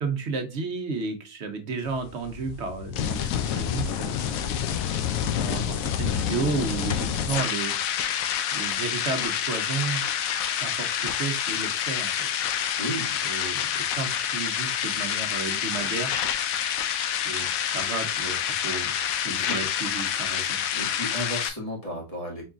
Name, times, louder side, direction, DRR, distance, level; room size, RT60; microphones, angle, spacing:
voice 1, 0.0-4.3 5.3-7.8 8.5-10.0 10.6-12.3 13.2-16.2 17.2-20.6, right 4 dB, 60° right, 6 dB, 1.0 m, -32 dB
sound 1, 1.8-21.5, left 9 dB, 85° left, 1.0 m, -28 dB
voice 2, 12.8-13.1 19.3-19.6 20.7-22.4, equal, 25° left, -2 dB, 1.8 m, -33 dB
4.6 x 3.6 x 2.3 m, 0.30 s
omnidirectional pair, 1.4 m